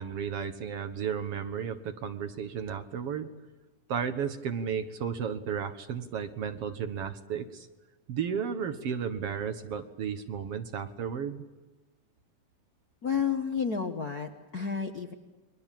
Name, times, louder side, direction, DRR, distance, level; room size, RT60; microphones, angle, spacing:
voice 1, 0.0-3.3 3.9-7.7 8.1-11.4, right 7 dB, 60° right, 8 dB, 2.1 m, -33 dB
voice 2, 13.0-15.1, left 6 dB, 45° left, 4 dB, 1.2 m, -31 dB
29.5 x 23.0 x 7.5 m, 1.2 s
omnidirectional pair, 3.4 m